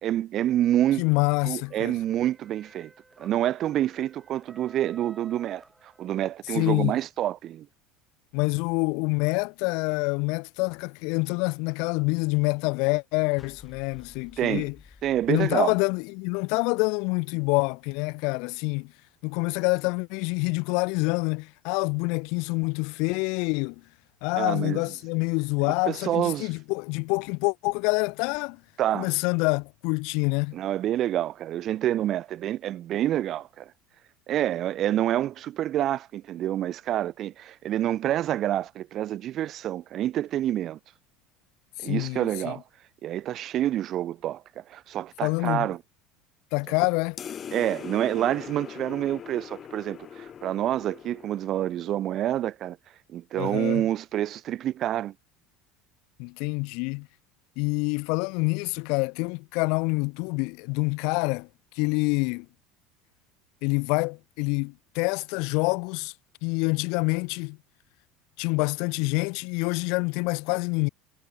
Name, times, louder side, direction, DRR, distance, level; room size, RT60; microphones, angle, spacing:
voice 1, 0.0-1.0 1.5-2.9 3.2-7.7 14.4-14.7 15.0-15.7 24.4-24.8 25.7-26.5 28.8-29.1 30.5-33.7 34.3-40.8 41.8-42.6 43.0-45.8 47.5-52.8 53.1-55.1, right 12 dB, 45° right, 0.8 m, -27 dB
voice 2, 1.0-2.0 6.5-6.9 8.3-14.7 15.3-18.9 19.2-23.8 24.2-28.6 28.9-30.6 41.8-42.5 45.2-45.7 46.5-47.2 53.4-53.9 56.2-57.1 57.6-61.5 61.8-62.5 63.6-66.1 66.4-67.6 68.4-70.9, left 31 dB, 70° left, 0.5 m, -26 dB
sound 1, 1.6-6.4, right 2 dB, 10° right, 5.7 m, -54 dB
sound 2, 13.4-16.6, left 4 dB, 20° left, 3.4 m, -53 dB
sound 3, 47.2-52.0, left 8 dB, 35° left, 1.5 m, -41 dB
supercardioid pair, 115°, 0 cm